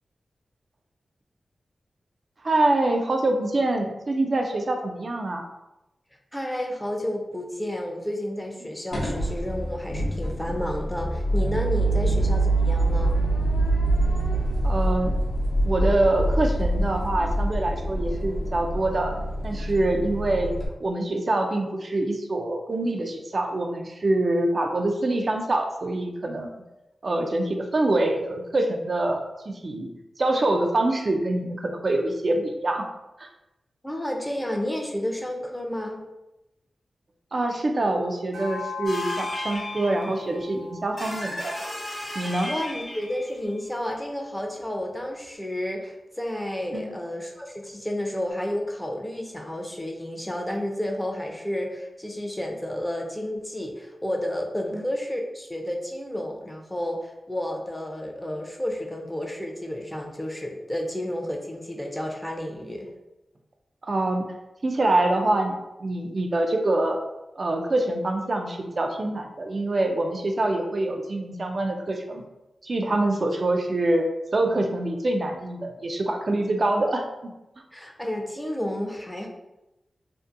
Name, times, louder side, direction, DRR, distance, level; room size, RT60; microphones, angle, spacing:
voice 1, 2.4-5.5 12.0-12.2 14.6-15.2 15.6-19.1 19.4-20.5 20.8-26.6 27.0-29.9 30.2-32.9 33.2-33.3 37.3-41.5 42.2-42.5 46.7-47.0 54.7-54.8 63.8-64.3 64.6-67.0 67.4-72.2 72.6-74.0 74.3-77.3, right 2 dB, 50° right, 4 dB, 0.3 m, -25 dB
voice 2, 6.3-13.2 33.8-36.0 42.5-62.9 77.7-79.3, left 1 dB, 10° left, 1 dB, 0.5 m, -31 dB
sound 1, 8.9-20.7, right 1 dB, 70° left, 0.7 m, -25 dB
sound 2, 38.3-42.9, left 4 dB, 80° right, 0.7 m, -38 dB
sound 3, 38.9-40.4 41.0-43.5 45.8-45.9 47.6-47.7 48.3-48.4, left 1 dB, 45° left, 1.0 m, -36 dB
2.6 x 2.5 x 2.4 m, 0.96 s
cardioid pair, 65°, 0 cm